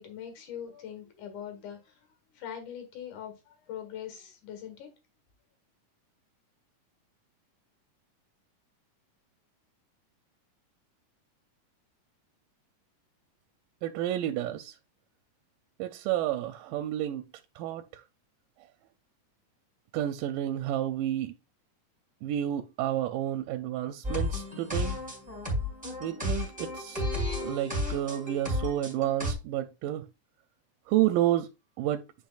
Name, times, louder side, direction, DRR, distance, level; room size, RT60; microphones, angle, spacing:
voice 1, 0.0-1.8 2.4-3.3 3.7-4.9, left 9 dB, 70° left, 3.1 m, -41 dB
voice 2, 13.8-14.7 15.8-17.3 17.6-18.0 19.9-21.4 22.2-25.0 26.0-27.0 27.4-30.1 30.9-31.5 31.8-32.1, right 12 dB, 90° right, 2.2 m, -30 dB
sound 1, 24.0-29.3, left 1 dB, 5° right, 2.6 m, -32 dB
9.1 x 5.4 x 2.4 m
omnidirectional pair, 3.7 m